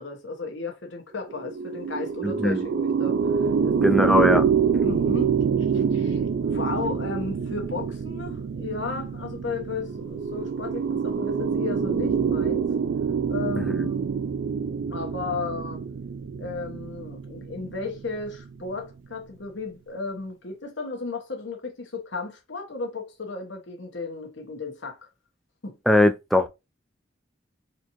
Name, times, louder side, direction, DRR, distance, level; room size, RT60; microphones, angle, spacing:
voice 1, 0.0-4.1 4.8-12.7 13.3-14.0 14.9-15.8 16.4-25.0 25.6-25.8, left 3 dB, 75° left, 1.2 m, -34 dB
sound 1, 1.3-18.7, right 6 dB, 80° right, 0.3 m, -26 dB
voice 2, 2.2-2.6 3.8-4.4 13.8-13.9 25.9-26.5, left 1 dB, ahead, 0.3 m, -20 dB
4.2 x 2.7 x 3.0 m
head